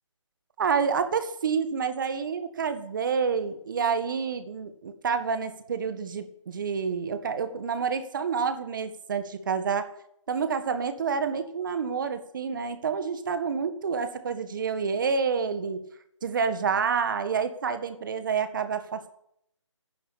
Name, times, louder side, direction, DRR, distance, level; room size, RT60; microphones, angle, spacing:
voice 1, 0.6-9.9 10.3-15.9 16.2-19.1, right 6 dB, 40° right, 10 dB, 1.8 m, -28 dB
13.0 x 11.5 x 8.7 m, 0.73 s
hypercardioid pair, 165°, 16 cm